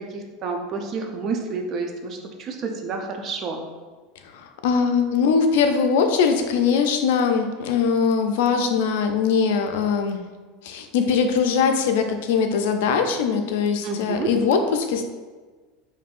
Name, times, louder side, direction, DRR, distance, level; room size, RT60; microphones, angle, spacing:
voice 1, 0.0-3.6 13.8-14.3, right 4 dB, 40° right, 3 dB, 0.5 m, -29 dB
voice 2, 4.2-10.2 10.6-15.0, left 6 dB, 80° left, 6 dB, 0.4 m, -21 dB
5.2 x 2.6 x 2.5 m, 1.4 s
supercardioid pair, 140°, 0 cm